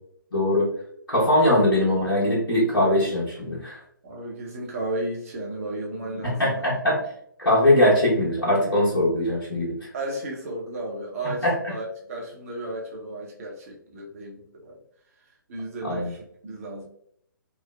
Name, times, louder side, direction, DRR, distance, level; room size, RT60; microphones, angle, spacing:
voice 1, 0.3-0.7 1.1-3.8 6.2-7.0 7.4-9.9 11.4-11.5 15.8-16.1, left 1 dB, 75° left, -7 dB, 1.2 m, -21 dB
voice 2, 4.0-6.6 9.9-14.8 15.5-16.9, right 2 dB, 40° right, 0 dB, 0.8 m, -34 dB
3.1 x 2.0 x 2.2 m, 0.68 s
figure-of-eight pair, 135°, 11 cm